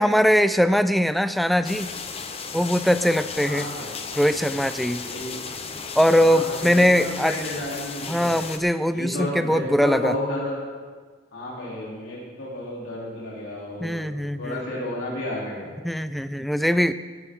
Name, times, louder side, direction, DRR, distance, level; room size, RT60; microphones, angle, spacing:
voice 1, 0.0-1.9 2.5-3.7 4.2-5.0 6.0-7.4 8.1-10.1 13.8-14.6 15.8-16.9, equal, ahead, 12 dB, 0.3 m, -21 dB
sound 1, 1.6-8.6, left 5 dB, 30° left, 0.8 m, -35 dB
voice 2, 3.4-3.9 5.0-5.4 6.2-8.3 8.9-10.5 11.3-14.1 14.4-15.7, left 1 dB, 80° left, -6 dB, 3.4 m, -32 dB
17.5 x 11.0 x 3.7 m, 1.5 s
head